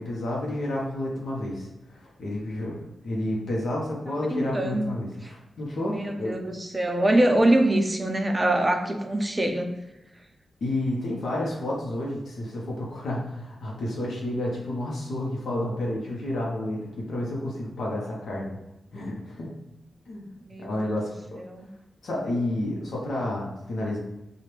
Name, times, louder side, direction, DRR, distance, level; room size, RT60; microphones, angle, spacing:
voice 1, 0.0-6.3 10.6-18.6 18.9-19.5 20.1-20.3 20.6-21.4 22.0-24.0, left 1 dB, 70° left, -3 dB, 0.9 m, -30 dB
voice 2, 4.3-4.9 5.8-9.7 20.4-20.9 21.4-21.7, right 1 dB, 15° right, 3 dB, 0.4 m, -24 dB
4.5 x 2.4 x 3.3 m, 0.95 s
wide cardioid pair, 160°, 0 cm